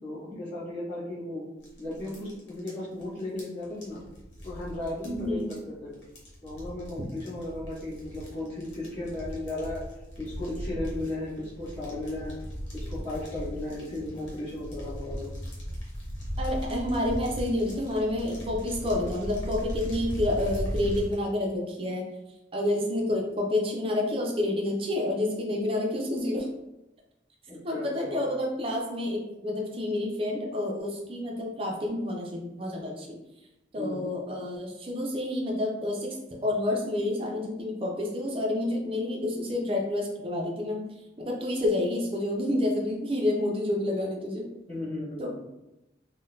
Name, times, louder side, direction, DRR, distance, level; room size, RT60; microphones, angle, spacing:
voice 1, 0.0-1.5 1.8-4.0 4.4-6.0 6.4-9.8 10.2-12.4 12.7-15.3 27.5-28.2 33.8-34.0 44.7-45.3, left 1 dB, 20° left, -17 dB, 1.3 m, -35 dB
sound 1, 1.6-21.1, equal, 80° left, 1.1 m, -38 dB
voice 2, 5.0-5.6 16.4-22.1 22.5-26.5 27.6-33.2 33.7-40.9 41.2-44.5 45.2-45.3, left 1 dB, 30° right, 0 dB, 0.5 m, -29 dB
3.8 x 2.2 x 2.5 m, 0.94 s
head